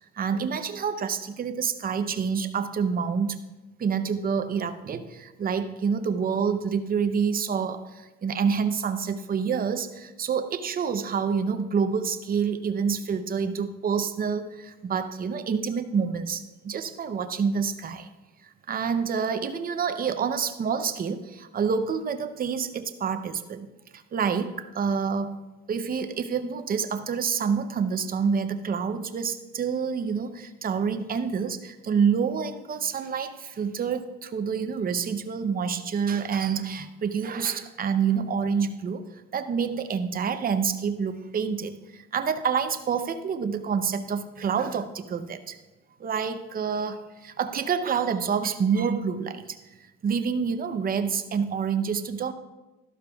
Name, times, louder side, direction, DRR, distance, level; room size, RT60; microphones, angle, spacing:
voice 1, 0.2-3.4 3.8-18.1 18.4-23.7 23.9-25.4 25.7-45.6 46.0-49.6 50.0-52.3, right 6 dB, 30° right, 9 dB, 0.6 m, -27 dB
13.5 x 12.0 x 2.3 m, 1.1 s
cardioid pair, 145°, 29 cm